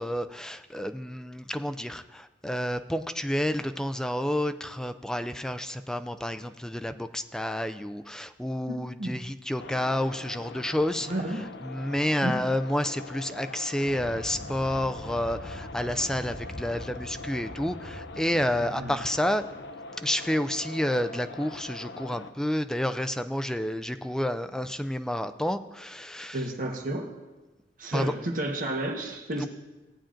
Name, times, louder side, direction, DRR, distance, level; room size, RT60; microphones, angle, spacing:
voice 1, 0.0-11.1 11.6-19.4 20.0-26.5 27.9-28.1 29.4-29.5, left 1 dB, 5° left, 10 dB, 0.3 m, -30 dB
voice 2, 8.7-9.2 11.1-11.4 12.2-12.4 18.8-18.9 26.3-27.1 27.8-29.5, right 1 dB, 50° right, 2 dB, 1.2 m, -31 dB
sound 1, 9.6-22.3, left 3 dB, 70° left, 0.5 m, -43 dB
sound 2, 13.9-19.7, equal, 40° left, 3.6 m, -43 dB
16.5 x 8.7 x 2.5 m, 1.2 s
head